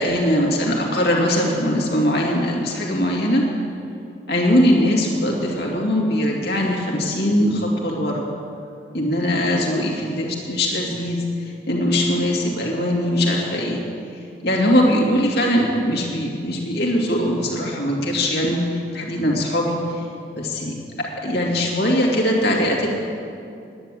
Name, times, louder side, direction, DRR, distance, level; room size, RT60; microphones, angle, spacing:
voice 1, 0.0-3.4 4.3-8.2 8.9-13.8 14.4-20.0 20.4-22.9, left 1 dB, 65° left, -2 dB, 2.3 m, -21 dB
10.5 x 10.0 x 7.5 m, 2.5 s
head